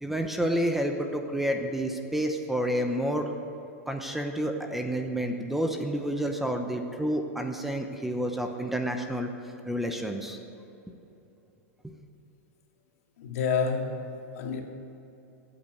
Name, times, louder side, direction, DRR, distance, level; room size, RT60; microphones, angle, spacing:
voice 1, 0.0-3.3 3.9-9.3 9.7-10.4, equal, 5° right, 4 dB, 0.8 m, -29 dB
voice 2, 13.2-14.6, left 5 dB, 70° left, 2 dB, 2.2 m, -29 dB
16.0 x 8.8 x 7.8 m, 3.0 s
supercardioid pair, 160°, 8 cm